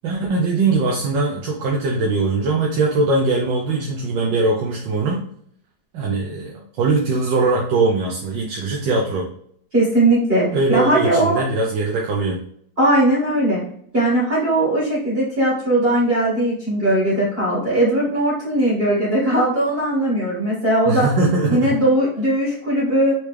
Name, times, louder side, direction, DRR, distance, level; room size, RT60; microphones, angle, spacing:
voice 1, 0.0-5.2 5.9-9.2 10.5-12.4 20.9-21.8, right 3 dB, 85° right, -2 dB, 1.5 m, -21 dB
voice 2, 9.7-11.4 12.8-13.6 13.9-21.1 21.5-23.2, right 1 dB, 35° right, -7 dB, 2.0 m, -19 dB
4.7 x 3.2 x 3.3 m, 0.63 s
omnidirectional pair, 1.9 m